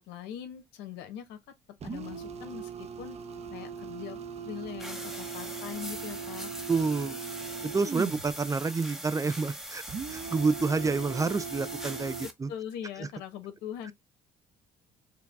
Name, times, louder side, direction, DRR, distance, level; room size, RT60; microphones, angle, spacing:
voice 1, 0.0-1.4 1.8-3.2 3.5-4.2 4.4-6.5 12.2-13.9, left 9 dB, 90° left, 1.3 m, -41 dB
sound 1, 1.8-8.3 9.9-12.2, right 6 dB, 40° right, 0.8 m, -40 dB
sound 2, 4.8-12.3, equal, ahead, 0.9 m, -42 dB
voice 2, 6.7-7.2 7.6-12.5 13.0-13.1, right 4 dB, 20° right, 0.4 m, -29 dB
4.7 x 2.3 x 3.4 m
cardioid pair, 110°, 17 cm